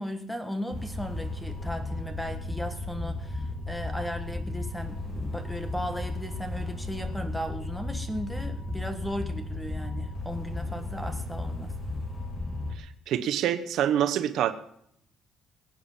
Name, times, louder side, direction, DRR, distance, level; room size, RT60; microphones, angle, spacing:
voice 1, 0.0-11.7, equal, ahead, 7 dB, 1.5 m, -36 dB
sound 1, 0.7-12.7, left 2 dB, 25° left, 2.6 m, -34 dB
voice 2, 12.8-14.5, right 10 dB, 70° right, 10 dB, 1.0 m, -26 dB
21.5 x 8.9 x 5.6 m, 0.70 s
cardioid pair, 160°, 0 cm